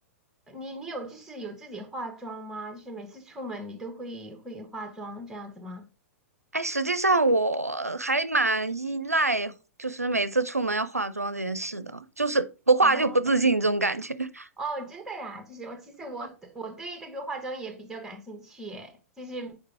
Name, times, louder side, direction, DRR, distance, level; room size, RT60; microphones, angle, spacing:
voice 1, 0.5-5.9 12.8-13.2 14.6-19.6, right 2 dB, 5° right, 1.4 m, -38 dB
voice 2, 6.5-9.5 9.8-14.5, right 2 dB, 90° right, 0.5 m, -25 dB
6.5 x 4.9 x 3.5 m
figure-of-eight pair, 105°, 8 cm